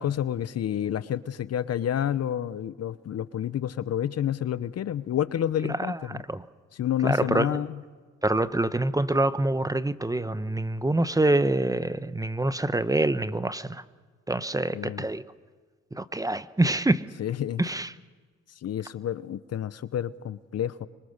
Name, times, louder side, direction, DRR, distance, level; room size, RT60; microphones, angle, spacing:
voice 1, 0.0-6.2 6.7-7.8 14.7-15.1 17.2-17.6 18.6-20.9, left 10 dB, 55° left, 16 dB, 0.9 m, -29 dB
voice 2, 5.9-6.4 7.0-7.6 8.2-13.8 14.3-15.2 15.9-17.0 17.6-17.9, right 2 dB, 10° right, 14 dB, 0.9 m, -26 dB
sound 1, 8.3-10.0, left 3 dB, 80° left, 4.0 m, -47 dB
25.0 x 23.5 x 6.6 m, 1.5 s
cardioid pair, 90°, 30 cm